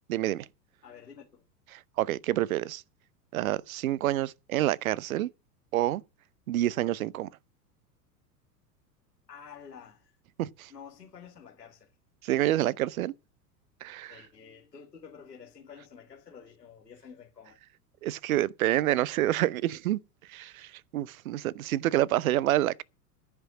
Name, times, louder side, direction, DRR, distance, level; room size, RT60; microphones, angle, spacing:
voice 1, 0.1-0.5 1.7-2.8 3.3-5.3 5.7-6.0 6.5-7.3 10.4-10.7 12.2-13.1 13.8-14.2 18.0-20.0 20.3-22.8, right 14 dB, 60° right, 0.8 m, -28 dB
voice 2, 0.8-1.4 9.3-10.2 10.7-11.9 14.1-17.6, left 7 dB, 80° left, 2.2 m, -49 dB
14.0 x 6.0 x 7.3 m
figure-of-eight pair, 90°, 48 cm